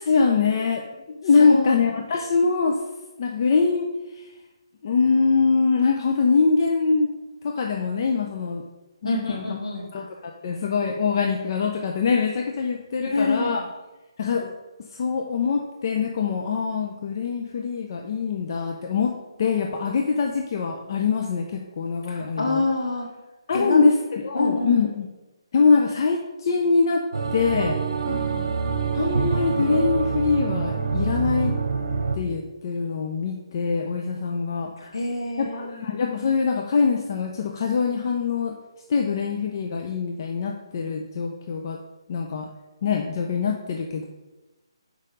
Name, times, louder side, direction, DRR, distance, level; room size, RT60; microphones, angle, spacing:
voice 1, 0.0-2.8 3.2-3.9 4.8-7.1 7.4-8.6 9.0-9.4 9.9-13.6 14.2-14.5 15.0-22.6 23.5-25.1 25.5-27.0 27.3-27.8 28.9-31.5 32.1-34.7 35.4-38.6 38.9-41.8 42.1-42.5 42.8-44.0, left 5 dB, 45° left, 2 dB, 0.7 m, -23 dB
voice 2, 1.4-1.9 9.0-10.1 13.0-13.6 22.1-23.1 23.5-23.8 24.3-24.8 28.1-28.5 34.8-35.8, left 3 dB, 75° left, -2 dB, 2.4 m, -27 dB
sound 1, 27.1-32.2, right 5 dB, 65° right, 1.0 m, -26 dB
6.5 x 5.1 x 5.2 m, 1.1 s
figure-of-eight pair, 150°, 3 cm